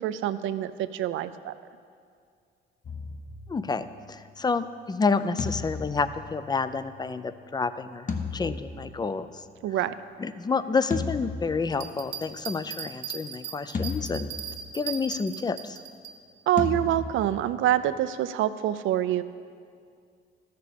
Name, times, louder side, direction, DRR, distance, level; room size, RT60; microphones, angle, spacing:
voice 1, 0.0-1.5 9.6-9.9 16.5-19.2, right 12 dB, 80° right, 13 dB, 0.5 m, -26 dB
sound 1, 2.8-4.1 5.4-7.1 8.1-9.4 10.9-12.3 13.7-14.9 16.6-18.0, left 4 dB, 40° left, 0.9 m, -35 dB
voice 2, 3.5-9.4 10.2-14.3 14.7-15.8, left 4 dB, 20° left, 13 dB, 0.4 m, -29 dB
sound 2, 11.7-16.1, right 8 dB, 60° right, 1.1 m, -37 dB
13.5 x 6.7 x 5.2 m, 2.3 s
cardioid pair, 90°, 20 cm